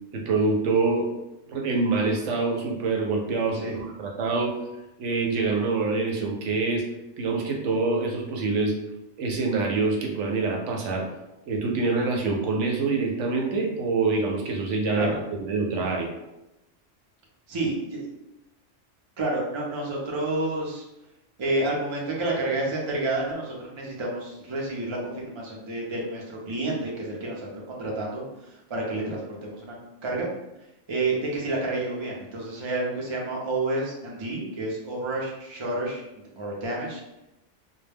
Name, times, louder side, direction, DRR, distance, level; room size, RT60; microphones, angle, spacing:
voice 1, 0.1-1.1 1.5-4.5 5.0-6.8 7.2-8.7 9.2-11.1 11.5-16.1, right 3 dB, 75° right, 1 dB, 0.9 m, -25 dB
voice 2, 17.5-18.1 19.2-20.8 21.4-28.2 28.7-29.8 30.0-30.3 30.9-36.0 36.4-37.0, right 2 dB, 40° right, -3 dB, 0.4 m, -29 dB
2.2 x 2.1 x 3.3 m, 0.92 s
omnidirectional pair, 1.3 m